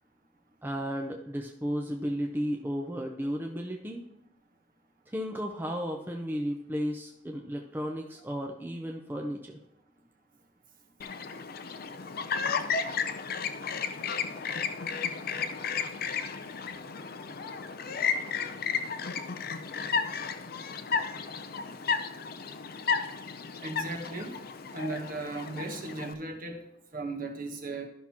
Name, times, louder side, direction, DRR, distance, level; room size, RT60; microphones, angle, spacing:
voice 1, 0.6-4.0 5.1-9.6, equal, 10° right, 1 dB, 0.5 m, -34 dB
Chirp tweet, 11.0-26.1, left 6 dB, 50° left, 0.5 m, -33 dB
voice 2, 23.6-24.3 24.7-26.6 26.9-27.8, right 2 dB, 45° right, 3 dB, 1.1 m, -36 dB
13.0 x 5.9 x 2.9 m, 0.81 s
head